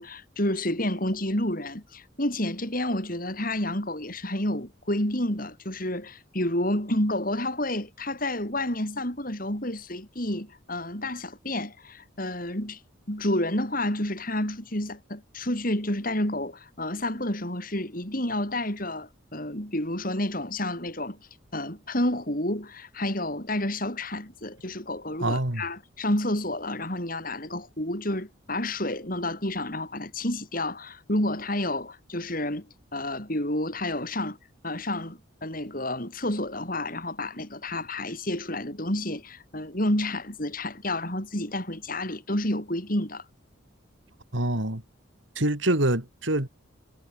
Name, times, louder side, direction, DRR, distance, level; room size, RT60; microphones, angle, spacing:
voice 1, 0.0-12.8 13.1-21.2 21.5-32.7 32.9-34.4 34.6-43.2, left 1 dB, 45° left, 7.0 m, -30 dB
voice 2, 25.2-25.6 44.3-44.8 45.4-46.5, right 1 dB, 70° right, 3.2 m, -25 dB
head